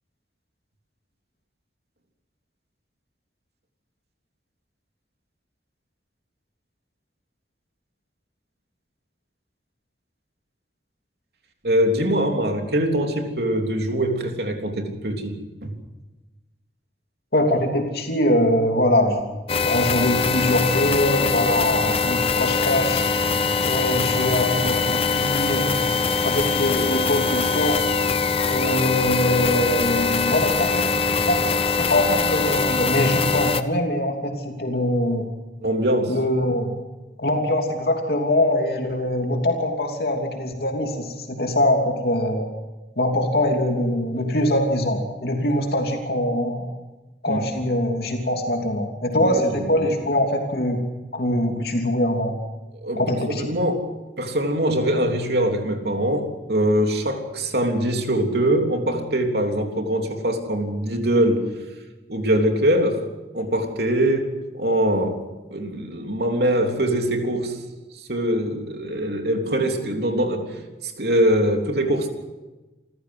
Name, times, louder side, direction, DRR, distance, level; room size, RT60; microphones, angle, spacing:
voice 1, 11.6-15.7 35.6-36.2 47.3-47.8 49.2-49.9 52.8-53.8 54.2-61.5 62.1-63.0 63.3-64.3 64.5-65.2 65.5-67.6 68.1-70.5 70.8-72.1, right 1 dB, 65° right, 3 dB, 3.4 m, -23 dB
voice 2, 17.3-19.3 19.6-23.0 23.6-25.7 26.2-27.9 28.5-30.9 31.1-35.3 36.1-36.7 37.2-42.5 43.0-46.7 47.2-50.8 51.1-52.3 53.0-53.5, left 1 dB, 60° left, 2 dB, 3.1 m, -23 dB
sound 1, 19.5-33.6, left 4 dB, 35° left, 0.9 m, -22 dB
28.0 x 15.0 x 7.9 m, 1.1 s
head